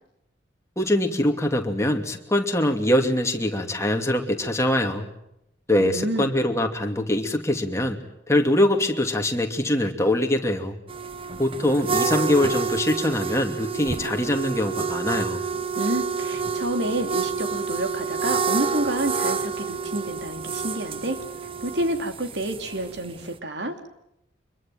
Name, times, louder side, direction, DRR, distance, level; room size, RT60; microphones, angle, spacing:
voice 1, 0.8-5.1 5.7-8.0 8.3-10.8 11.4-15.4, left 1 dB, 15° left, 4 dB, 2.7 m, -23 dB
voice 2, 5.8-6.3 15.7-21.2 21.6-23.8, right 1 dB, 70° right, 7 dB, 3.0 m, -29 dB
sound 1, 10.9-23.3, right 5 dB, 30° right, 1.0 m, -29 dB
25.5 x 23.0 x 7.8 m, 0.83 s
head